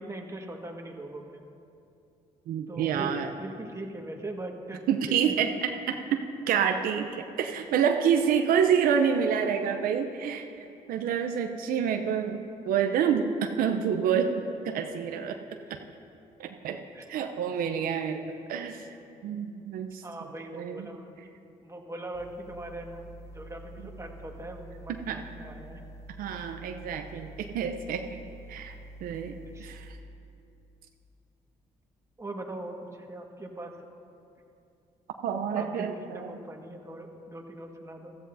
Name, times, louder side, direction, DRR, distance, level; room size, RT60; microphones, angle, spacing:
voice 1, 0.0-1.4 2.7-5.4 15.7-15.8 16.9-17.1 20.0-21.3 21.6-23.0 23.3-25.8 29.5-29.7 32.2-33.7 35.5-38.2, right 1 dB, 20° right, 2 dB, 1.7 m, -41 dB
voice 2, 2.5-3.3 4.9-5.7 6.5-10.5 10.9-14.3 14.6-15.4 16.4-16.8 17.1-18.8 19.2-20.0 20.6-20.9 25.1-25.2 26.2-28.2 28.5-28.7 29.0-29.9 35.2-36.3, right 7 dB, 75° right, 5 dB, 0.7 m, -28 dB
sound 1, 22.1-29.9, right 1 dB, 20° left, 2.3 m, -47 dB
15.0 x 13.5 x 2.7 m, 2.6 s
supercardioid pair, 60°, 15 cm